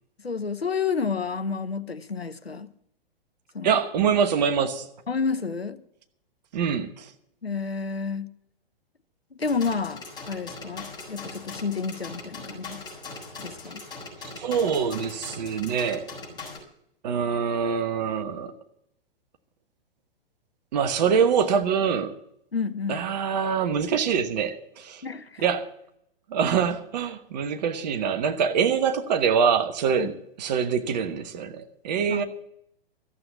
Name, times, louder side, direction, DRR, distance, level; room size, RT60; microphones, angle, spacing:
voice 1, 0.2-2.7 3.5-3.7 5.1-5.8 7.4-8.3 9.3-12.8 13.4-13.8 22.5-23.0 25.0-25.4 30.0-30.1 32.1-32.2, left 5 dB, 85° left, 1.0 m, -30 dB
voice 2, 3.6-4.9 6.5-7.1 14.4-16.1 17.0-18.5 20.7-22.1 22.9-25.0 25.4-25.7 26.3-32.2, right 7 dB, 45° right, 1.2 m, -24 dB
sound 1, 9.4-16.6, left 3 dB, 15° left, 5.1 m, -40 dB
14.0 x 7.8 x 8.3 m
figure-of-eight pair, 110°, 30 cm